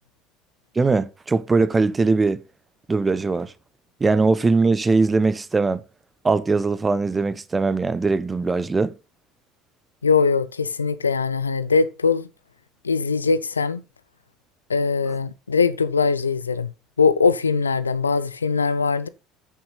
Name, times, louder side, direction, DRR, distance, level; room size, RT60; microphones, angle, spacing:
voice 1, 0.8-2.4 2.9-3.5 4.0-5.8 6.2-8.9, right 3 dB, 20° right, 0.7 m, -20 dB
voice 2, 10.0-12.3 12.8-13.8 14.7-16.7 17.0-19.1, left 5 dB, 85° left, 0.5 m, -21 dB
8.6 x 7.0 x 3.9 m
figure-of-eight pair, 65°, 0 cm